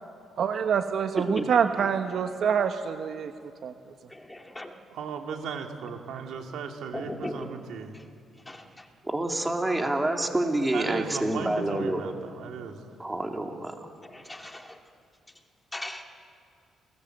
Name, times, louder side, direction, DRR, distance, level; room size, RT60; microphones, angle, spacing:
voice 1, 0.4-3.3 3.6-3.7, right 7 dB, 60° right, 7 dB, 1.1 m, -26 dB
voice 2, 4.1-4.7 6.9-7.5 7.9-8.1 8.3-8.9 14.0-14.8 15.7-16.0, left 1 dB, 10° left, 4 dB, 2.2 m, -39 dB
voice 3, 4.9-7.9 10.7-12.9, right 6 dB, 80° right, 3 dB, 2.6 m, -36 dB
voice 4, 9.0-12.0 13.0-13.7, right 1 dB, 15° right, 2 dB, 3.0 m, -27 dB
27.5 x 19.0 x 8.0 m, 2.4 s
cardioid pair, 90°, 0 cm